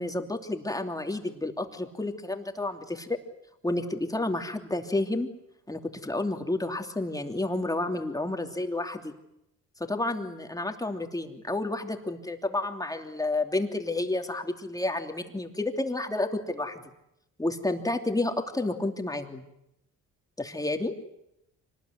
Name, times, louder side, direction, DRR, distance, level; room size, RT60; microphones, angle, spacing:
voice 1, 0.0-3.2 3.6-5.3 5.7-9.1 9.8-16.8 17.4-19.4 20.4-20.9, left 2 dB, 10° left, 5 dB, 2.9 m, -30 dB
25.5 x 19.5 x 9.6 m, 0.82 s
cardioid pair, 90°, 30 cm